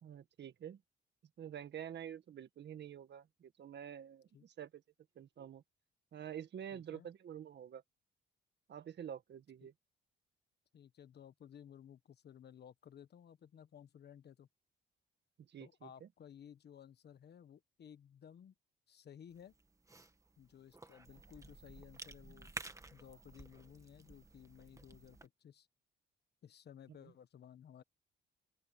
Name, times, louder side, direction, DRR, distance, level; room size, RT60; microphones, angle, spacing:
voice 1, 0.0-0.8 1.4-4.8 5.2-5.6 6.1-7.8 8.7-9.7 15.4-16.1 27.0-27.1, right 9 dB, 60° right, 1.9 m, -48 dB
voice 2, 6.7-7.1 9.6-9.7 10.7-14.5 15.6-18.5 18.9-19.5 20.4-22.5 22.9-25.7 26.4-27.8, left 9 dB, 55° left, 1.4 m, -57 dB
Cough / Chewing mastication, 19.3-25.3, right 2 dB, 15° right, 1.9 m, -53 dB
open air
cardioid pair, 90°, 20 cm